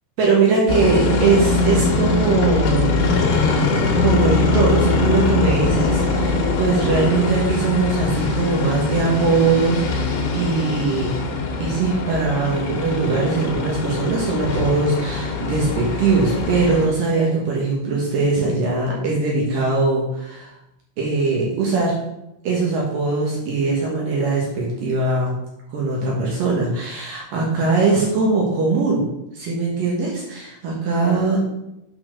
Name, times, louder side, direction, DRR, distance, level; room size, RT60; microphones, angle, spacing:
voice 1, 0.2-3.7 3.9-11.1 11.6-20.5 21.0-22.0 22.4-25.4 25.7-29.0 29.3-31.4, right 3 dB, 65° right, -3 dB, 2.3 m, -21 dB
sound 1, 0.7-16.9, left 3 dB, 70° left, 3.6 m, -22 dB
8.6 x 4.4 x 6.2 m, 0.86 s
omnidirectional pair, 5.8 m